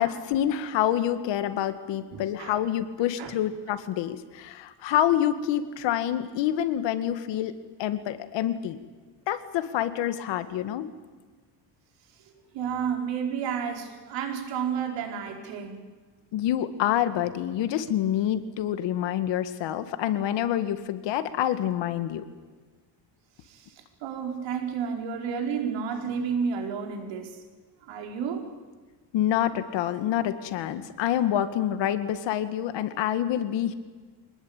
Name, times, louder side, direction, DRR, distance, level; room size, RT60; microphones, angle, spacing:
voice 1, 0.0-8.8 9.3-10.9 16.3-22.2 29.1-33.7, left 11 dB, 80° left, 10 dB, 2.0 m, -27 dB
voice 2, 2.1-2.5 3.2-3.3 12.5-15.8 23.4-27.4 27.8-28.5, right 7 dB, 85° right, 3 dB, 5.0 m, -31 dB
25.5 x 20.0 x 9.0 m, 1.4 s
cardioid pair, 140°, 43 cm